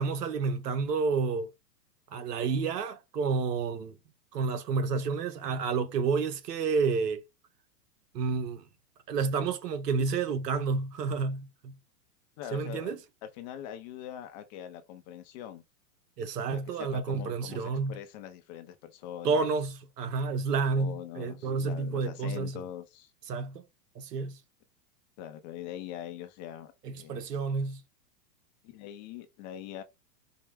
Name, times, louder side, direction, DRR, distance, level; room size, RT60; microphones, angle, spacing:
voice 1, 0.0-1.5 2.1-4.0 4.3-7.2 8.1-8.6 9.1-11.7 12.5-13.0 16.2-18.0 19.2-22.6 23.3-23.6 23.9-24.4 26.8-27.8, right 4 dB, 85° right, 1.1 m, -30 dB
voice 2, 12.4-12.9 13.3-15.6 16.5-19.5 20.7-23.1 25.2-27.2 28.6-29.8, left 11 dB, 30° left, 0.4 m, -43 dB
4.6 x 2.0 x 3.3 m
hypercardioid pair, 135°, 46 cm